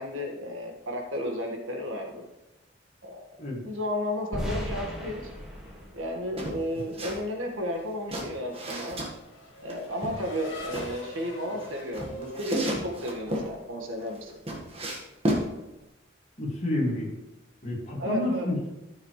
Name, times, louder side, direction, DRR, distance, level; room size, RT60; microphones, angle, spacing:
voice 1, 0.0-2.2 3.0-3.2 3.6-5.3 5.9-9.0 9.6-14.3 18.0-18.5, left 1 dB, 85° right, 2 dB, 1.8 m, -33 dB
sound 1, 4.3-7.3, equal, 5° right, 2.0 m, -37 dB
sound 2, 6.4-7.2 7.5-9.1 9.7-10.9 11.6-13.5 14.0-15.5, right 1 dB, 30° right, 1.6 m, -32 dB
Race car auto racing / Accelerating revving vroom, 7.5-13.6, left 1 dB, 75° left, 2.1 m, -44 dB
voice 2, 16.4-17.1 17.6-18.7, left 1 dB, 35° left, -2 dB, 2.2 m, -29 dB
13.0 x 6.6 x 3.3 m, 0.98 s
head